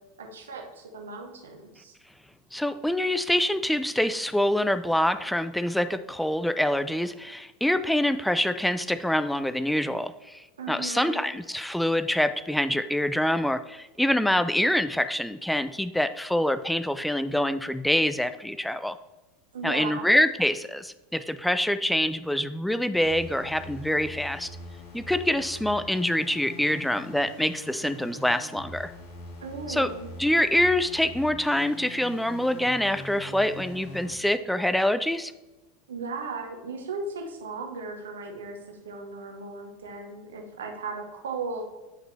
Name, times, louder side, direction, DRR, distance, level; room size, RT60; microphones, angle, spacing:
voice 1, 0.2-1.9 10.6-11.2 19.5-20.1 29.4-30.1 35.9-41.6, right 3 dB, 75° right, 2 dB, 1.1 m, -36 dB
voice 2, 2.5-19.0 19.6-24.5 24.9-28.9 29.7-29.9 30.2-35.3, left 1 dB, 5° left, 12 dB, 0.3 m, -25 dB
sound 1, 23.0-34.1, left 2 dB, 60° left, 1.9 m, -43 dB
8.5 x 5.0 x 3.3 m, 1.1 s
figure-of-eight pair, 80°, 0 cm